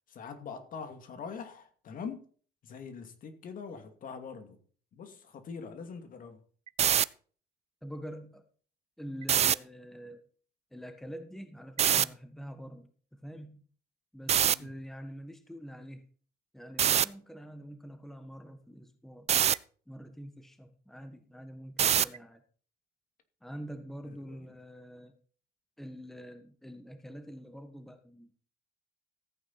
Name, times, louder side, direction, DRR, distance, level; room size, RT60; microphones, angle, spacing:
voice 1, 0.1-2.2 2.6-4.6 4.9-6.4 14.5-14.8 24.0-24.5, left 5 dB, 55° left, 2.4 m, -43 dB
sound 1, 6.7-7.0 9.2-9.5 11.8-12.0 14.3-14.5 16.8-17.0 19.3-19.6 21.8-22.2, right 9 dB, 40° right, 0.5 m, -24 dB
voice 2, 7.8-8.4 9.0-10.3 10.7-13.7 14.1-16.1 16.5-19.3 19.9-22.4 23.4-25.2 25.8-28.3, equal, ahead, 1.5 m, -45 dB
15.0 x 8.9 x 4.2 m
cardioid pair, 110°, 17 cm